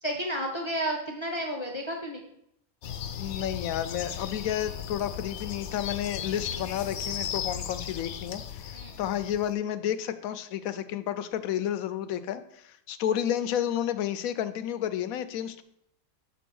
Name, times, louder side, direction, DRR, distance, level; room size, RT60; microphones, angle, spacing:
voice 1, 0.0-2.2 6.2-6.5 8.7-9.0, right 1 dB, 25° left, 1 dB, 0.8 m, -32 dB
sound 1, 2.8-9.5, left 9 dB, 65° left, 0.8 m, -36 dB
voice 2, 3.2-15.6, left 10 dB, 85° left, 12 dB, 1.0 m, -31 dB
7.0 x 4.0 x 6.1 m, 0.75 s
omnidirectional pair, 1.4 m